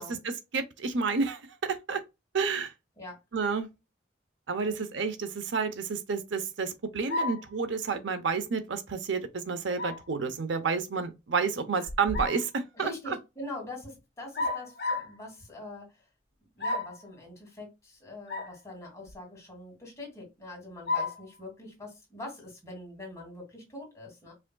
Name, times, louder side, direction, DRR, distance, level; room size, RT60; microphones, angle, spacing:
voice 1, 0.2-2.0 2.3-2.7 3.3-3.7 4.5-13.1, right 5 dB, 80° right, 0.7 m, -30 dB
voice 2, 4.7-5.1 12.7-16.0 16.6-24.3, left 2 dB, 15° left, 2.4 m, -43 dB
sound 1, 7.1-7.5 9.8-10.1 11.9-12.5 14.3-15.2 16.6-17.0 18.3-18.6 19.1-19.2 20.9-21.2, left 2 dB, 60° left, 1.1 m, -31 dB
5.1 x 3.5 x 2.2 m
head